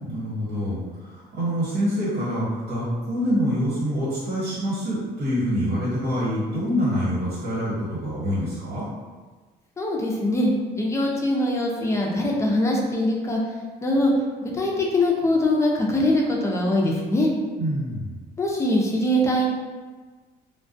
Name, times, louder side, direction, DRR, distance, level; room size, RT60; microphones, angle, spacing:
voice 1, 0.0-8.9 17.6-18.2, equal, 75° right, -10 dB, 1.3 m, -26 dB
voice 2, 9.8-13.4 13.8-14.1 14.4-17.3 18.4-19.5, left 1 dB, 15° left, -1 dB, 0.5 m, -22 dB
2.3 x 2.2 x 2.5 m, 1.4 s
cardioid pair, 110°, 17 cm